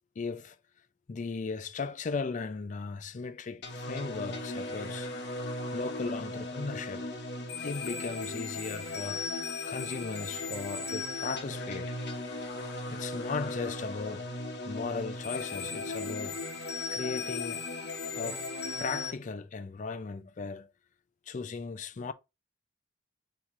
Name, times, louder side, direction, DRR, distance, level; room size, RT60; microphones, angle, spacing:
voice 1, 0.2-0.6 1.1-5.1 5.7-7.1 7.6-9.2 9.7-12.0 12.9-14.3 14.6-16.4 16.9-17.6 18.1-18.4 18.8-20.7 21.3-22.1, left 4 dB, 40° left, 0.4 m, -37 dB
sound 1, 3.6-19.1, left 3 dB, 60° left, 0.9 m, -37 dB
3.6 x 2.9 x 4.5 m
head